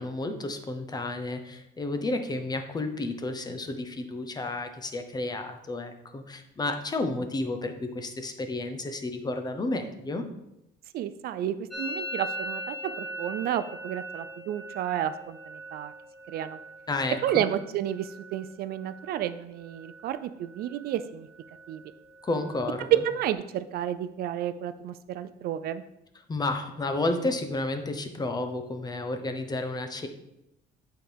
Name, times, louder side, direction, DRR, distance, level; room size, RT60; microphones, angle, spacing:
voice 1, 0.0-10.2 16.9-17.4 22.2-23.0 26.3-30.1, left 2 dB, 25° left, 7 dB, 0.8 m, -31 dB
voice 2, 10.9-15.9 16.3-16.6 17.2-21.3 21.7-21.8 22.9-25.8, right 11 dB, 65° right, 13 dB, 0.4 m, -31 dB
Musical instrument, 11.7-19.4 19.6-20.2 20.4-21.0 21.3-23.3, equal, ahead, 1.3 m, -41 dB
8.4 x 4.5 x 3.4 m, 0.85 s
cardioid pair, 110°, 17 cm